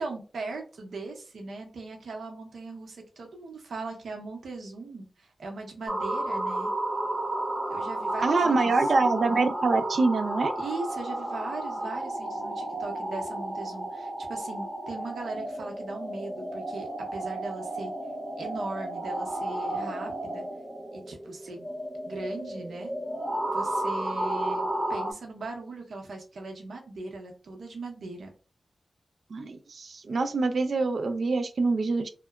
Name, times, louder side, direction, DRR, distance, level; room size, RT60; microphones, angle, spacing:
voice 1, 0.0-6.7 7.7-8.9 10.6-17.9 18.4-20.4 20.9-21.7 22.1-22.9 23.5-28.3, right 3 dB, 85° right, 2 dB, 0.8 m, -39 dB
sound 1, 5.9-25.1, right 1 dB, 25° right, 0.6 m, -32 dB
voice 2, 8.2-10.5 29.3-32.1, right 3 dB, 70° right, 9 dB, 0.4 m, -25 dB
2.8 x 2.1 x 2.3 m, 0.35 s
wide cardioid pair, 80°, 0 cm